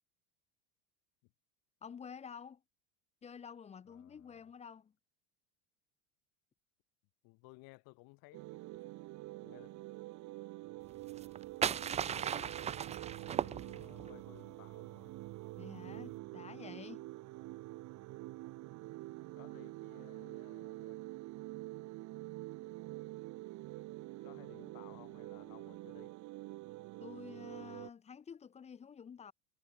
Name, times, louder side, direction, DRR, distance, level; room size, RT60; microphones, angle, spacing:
voice 1, 1.8-2.6 3.2-4.9 15.6-17.1 27.0-29.3, left 7 dB, 15° left, 0.9 m, -50 dB
voice 2, 3.9-4.5 7.2-8.5 9.4-9.8 11.6-12.6 13.2-15.2 19.3-21.0 24.2-26.1, left 27 dB, 55° left, 6.0 m, -59 dB
sound 1, 8.3-27.9, right 19 dB, 45° right, 2.0 m, -47 dB
sound 2, 11.1-14.1, right 8 dB, 15° right, 0.6 m, -36 dB
supercardioid pair, 155°, 42 cm